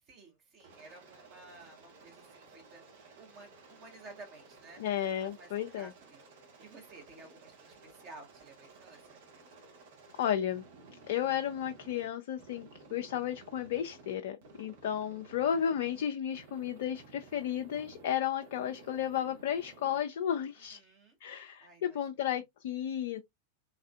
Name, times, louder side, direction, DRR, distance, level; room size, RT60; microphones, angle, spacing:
voice 1, 0.1-9.2 20.5-21.2 21.6-22.0 22.3-22.4, right 3 dB, 35° right, 1.6 m, -54 dB
Aircraft, 0.6-12.1 12.4-14.1 14.4-16.0 16.3-18.1 18.4-20.0, right 3 dB, 55° right, 1.1 m, -55 dB
voice 2, 4.8-5.9 10.2-10.6 11.1-12.7 12.9-20.8 21.2-23.2, left 9 dB, 55° left, 0.4 m, -33 dB
3.5 x 3.2 x 2.3 m
figure-of-eight pair, 90°, 0 cm